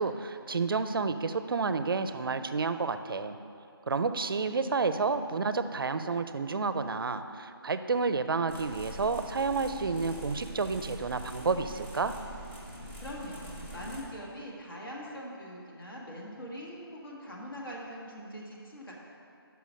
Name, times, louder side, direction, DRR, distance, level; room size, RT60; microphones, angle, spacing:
voice 1, 0.0-3.4 3.9-12.1, right 4 dB, 60° right, 11 dB, 0.4 m, -30 dB
sound 1, 8.5-14.0, equal, 30° left, 1.1 m, -44 dB
voice 2, 12.7-18.9, equal, 60° left, -3 dB, 1.5 m, -42 dB
5.7 x 5.7 x 6.1 m, 2.5 s
figure-of-eight pair, 175°, 13 cm